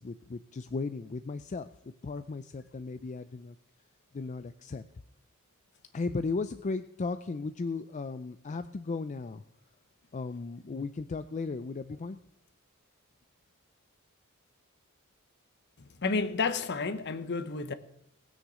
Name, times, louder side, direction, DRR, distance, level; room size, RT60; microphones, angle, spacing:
voice 1, 0.0-3.6 4.1-4.8 5.9-9.4 10.1-12.2, left 3 dB, 35° left, 0.4 m, -36 dB
voice 2, 15.8-17.7, left 4 dB, 55° left, 0.9 m, -31 dB
19.0 x 6.5 x 6.2 m
head